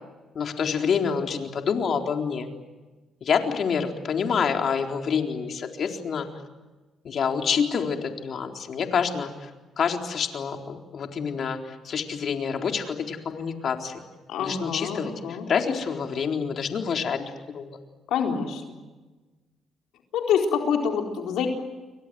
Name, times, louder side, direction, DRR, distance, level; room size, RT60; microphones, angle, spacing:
voice 1, 0.3-2.5 3.2-6.3 7.0-9.5 9.8-14.0 14.4-17.7, left 6 dB, 55° left, 3 dB, 4.0 m, -27 dB
voice 2, 14.3-15.5 18.1-18.8 20.1-21.5, left 7 dB, 85° left, 2 dB, 4.3 m, -26 dB
29.5 x 24.0 x 7.9 m, 1.2 s
cardioid pair, 90°, 0 cm